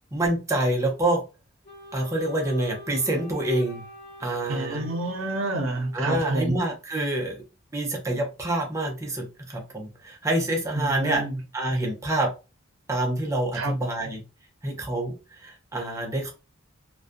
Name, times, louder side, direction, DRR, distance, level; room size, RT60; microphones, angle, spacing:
voice 1, 0.1-1.2 1.9-3.8 4.2-4.9 5.9-7.4 7.7-11.3 11.5-12.3 12.9-14.2 14.6-15.1 15.4-16.3, right 1 dB, 15° right, 0.5 m, -27 dB
Wind instrument woodwind instrument, 1.6-6.3, left 1 dB, 50° left, 0.9 m, -45 dB
voice 2, 4.5-6.6 10.7-11.4 13.5-13.7, right 2 dB, 90° right, 0.7 m, -28 dB
2.4 x 2.2 x 2.5 m
head